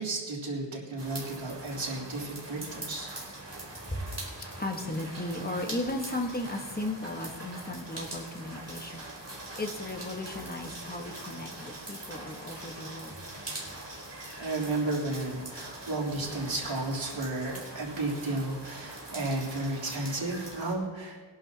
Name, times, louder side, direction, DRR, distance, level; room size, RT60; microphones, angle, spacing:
voice 1, 0.0-3.2 14.4-21.2, right 2 dB, 85° right, -5 dB, 3.6 m, -33 dB
sound 1, 1.0-20.7, right 2 dB, 35° right, 4.1 m, -42 dB
voice 2, 3.6-13.2, left 1 dB, 20° left, 2 dB, 1.4 m, -36 dB
22.0 x 11.5 x 2.9 m, 1.4 s
wide cardioid pair, 90°, 46 cm